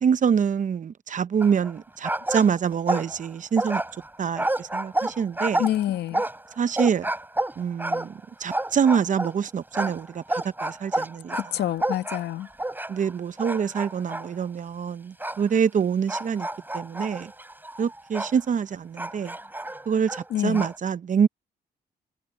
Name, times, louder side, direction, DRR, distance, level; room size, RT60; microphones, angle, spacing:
voice 1, 0.0-3.8 4.2-5.6 6.6-7.1 7.6-11.7 12.9-16.5 16.7-17.3 17.8-19.4 19.9-21.3, right 7 dB, 50° right, 0.9 m, -25 dB
sound 1, 1.4-1.8 2.0-3.3 3.6-9.4 9.7-13.1 13.4-14.3 15.2-15.4 16.1-18.4 19.0-20.8, right 1 dB, 10° right, 7.0 m, -29 dB
voice 2, 5.6-6.2 11.3-12.5 20.3-20.6, left 12 dB, 85° left, 1.7 m, -27 dB
cardioid pair, 80°, 17 cm